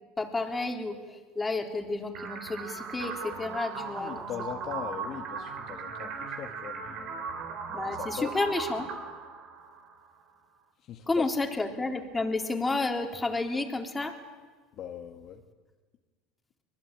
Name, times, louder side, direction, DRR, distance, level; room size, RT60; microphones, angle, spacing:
voice 1, 0.2-4.3 4.8-4.9 7.7-8.9 11.1-14.2, left 3 dB, 15° left, 3 dB, 3.5 m, -31 dB
sound 1, 2.1-10.1, right 5 dB, 50° right, 4.1 m, -38 dB
voice 2, 3.7-7.2 7.9-8.3 10.8-11.3 14.7-15.4, left 9 dB, 50° left, 4 dB, 1.9 m, -40 dB
24.5 x 20.5 x 9.1 m, 1.4 s
hypercardioid pair, 95°, 0 cm